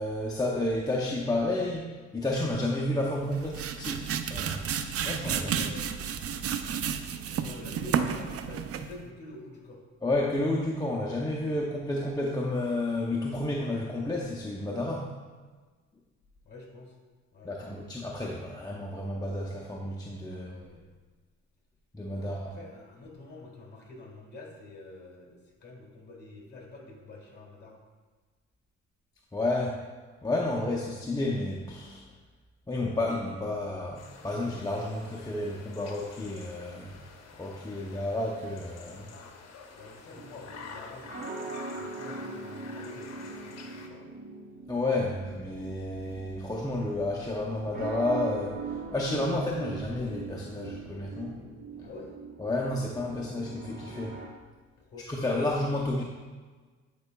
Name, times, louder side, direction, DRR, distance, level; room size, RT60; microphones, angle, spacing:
voice 1, 0.0-4.7 5.0-5.8 10.0-15.1 17.4-20.5 21.9-22.6 29.3-29.8 30.2-32.0 32.7-37.0 37.4-39.1 44.7-51.3 52.4-54.2 55.1-56.0, left 2 dB, 15° left, -3 dB, 0.6 m, -31 dB
sound 1, 3.2-9.0, right 7 dB, 50° right, 0.5 m, -32 dB
voice 2, 5.3-6.1 7.3-9.8 11.4-11.6 16.5-17.0 17.3-17.6 20.3-20.9 22.1-27.8 39.7-44.2 51.8-52.1 54.8-55.1, left 2 dB, 35° left, -1 dB, 1.8 m, -47 dB
sound 2, 33.9-43.9, left 5 dB, 60° left, 0.8 m, -48 dB
sound 3, 40.2-54.3, right 4 dB, 30° right, 0.8 m, -42 dB
9.5 x 4.8 x 2.2 m, 1.4 s
cardioid pair, 90°, 30 cm